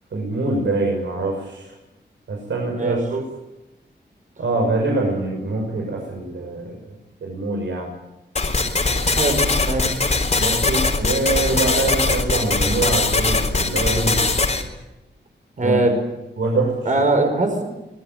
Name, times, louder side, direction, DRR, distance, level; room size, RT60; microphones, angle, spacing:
voice 1, 0.1-1.7 2.3-3.3 4.4-6.8 7.2-7.9 10.4-14.2 15.6-15.9 16.4-16.8, right 2 dB, 85° right, 0 dB, 6.6 m, -24 dB
sound 1, 8.4-14.6, left 3 dB, 40° left, 3.6 m, -21 dB
voice 2, 9.1-10.0 11.5-11.7 15.6-15.9 16.8-17.6, right 2 dB, 45° right, 4 dB, 5.2 m, -21 dB
24.5 x 20.0 x 9.4 m, 0.97 s
wide cardioid pair, 160°, 19 cm